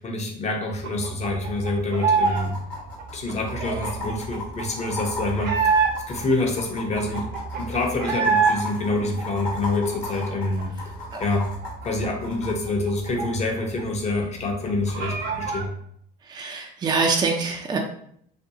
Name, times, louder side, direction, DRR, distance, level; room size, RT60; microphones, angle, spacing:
voice 1, 0.0-2.5 3.1-7.3 7.6-10.7 11.2-11.5 11.8-15.7, left 2 dB, 35° left, 2 dB, 0.7 m, -26 dB
sound 1, 0.8-2.5 2.7-6.2 6.7-6.8 6.9-8.6 8.9-10.6 10.9-11.0 11.3-13.8 14.1-14.2 14.5-15.7, right 5 dB, 55° right, 0.7 m, -26 dB
sound 2, 1.2-1.3 1.5-1.6 2.2-12.5 14.2-14.3, left 2 dB, 75° left, 1.0 m, -36 dB
voice 2, 16.2-17.8, right 4 dB, 20° right, 1 dB, 0.4 m, -24 dB
2.5 x 2.2 x 2.7 m, 0.67 s
supercardioid pair, 85°, 20 cm